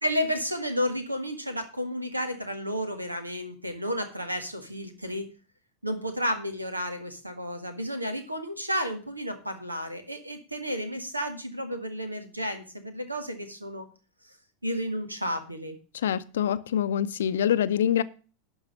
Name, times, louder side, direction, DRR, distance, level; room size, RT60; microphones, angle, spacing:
voice 1, 0.0-5.3 5.8-13.8 14.6-15.8, equal, 85° right, 1.7 m, -32 dB
voice 2, 16.0-18.0, left 9 dB, 65° left, 0.6 m, -25 dB
11.5 x 4.8 x 7.4 m
figure-of-eight pair, 85°, 0 cm